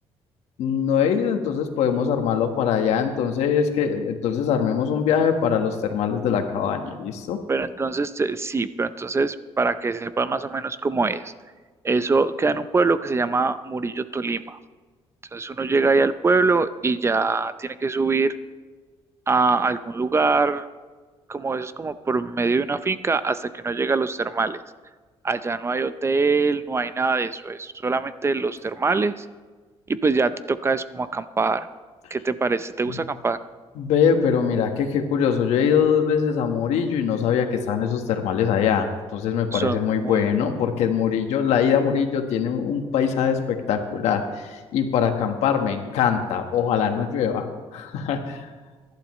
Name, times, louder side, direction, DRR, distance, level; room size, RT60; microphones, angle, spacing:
voice 1, 0.6-7.4 32.9-33.0 33.8-47.5 47.7-48.5, left 7 dB, 90° left, 5 dB, 1.4 m, -22 dB
voice 2, 7.5-11.3 11.8-14.6 15.3-18.4 19.3-20.7 21.3-24.6 25.2-29.2 29.9-31.7 32.1-33.4 39.5-40.2, right 4 dB, 25° right, 13 dB, 0.5 m, -23 dB
22.5 x 11.5 x 3.2 m, 1.4 s
cardioid pair, 105°, 11 cm